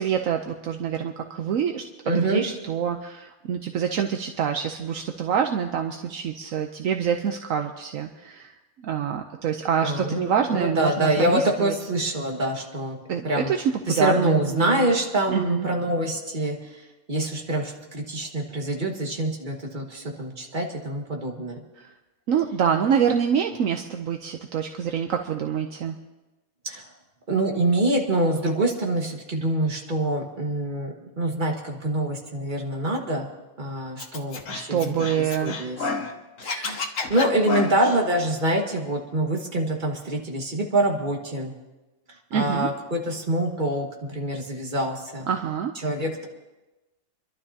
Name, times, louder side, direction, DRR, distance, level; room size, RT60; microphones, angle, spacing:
voice 1, 0.0-8.5 8.8-11.7 13.1-14.9 15.3-15.7 21.8-21.9 22.3-25.9 34.5-35.6 42.3-42.7 45.3-45.7, right 8 dB, 70° right, 4 dB, 1.1 m, -26 dB
voice 2, 2.1-2.4 9.8-13.0 13.2-13.5 13.9-16.8 17.1-21.6 26.6-26.8 27.3-33.3 33.6-35.8 36.4-41.5 42.3-45.3 45.8-46.3, right 1 dB, 35° right, 0 dB, 1.9 m, -25 dB
Scratching (performance technique), 34.0-36.1 36.4-38.0, left 4 dB, 65° left, 1.4 m, -30 dB
28.5 x 12.0 x 2.8 m, 1.1 s
omnidirectional pair, 1.5 m